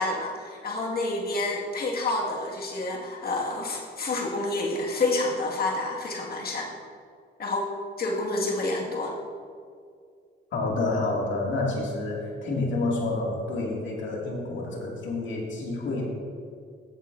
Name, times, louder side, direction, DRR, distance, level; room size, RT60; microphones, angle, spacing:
voice 1, 0.0-6.7 7.4-7.7 8.0-9.1, left 2 dB, 50° left, -1 dB, 2.0 m, -28 dB
voice 2, 10.5-16.1, left 2 dB, 70° left, -2 dB, 2.4 m, -29 dB
14.5 x 7.9 x 2.7 m, 2.2 s
cardioid pair, 90°, 20 cm